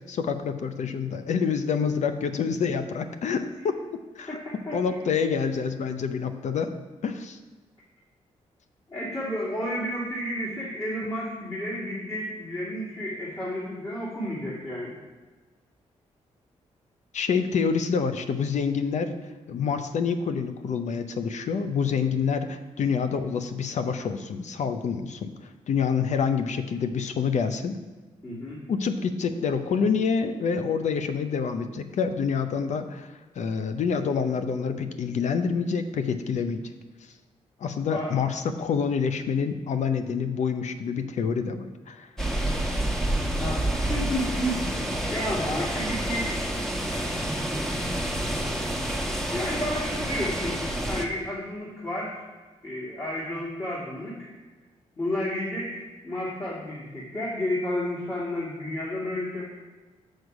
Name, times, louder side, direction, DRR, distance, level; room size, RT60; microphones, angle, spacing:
voice 1, 0.1-3.8 4.2-4.4 4.7-6.7 7.0-7.4 17.1-19.1 19.5-27.8 28.7-36.6 37.6-42.1, left 6 dB, 65° left, 8 dB, 0.6 m, -27 dB
voice 2, 4.3-5.0 8.9-14.9 28.2-28.6 37.9-38.1 43.4-44.8 45.1-46.5 46.8-47.1 49.3-52.3 52.6-54.3 55.0-59.5, left 1 dB, 30° left, -7 dB, 2.5 m, -31 dB
sound 1, 42.2-51.0, right 1 dB, 5° left, 1.2 m, -28 dB
6.4 x 6.4 x 4.8 m, 1.3 s
cardioid pair, 65°, 13 cm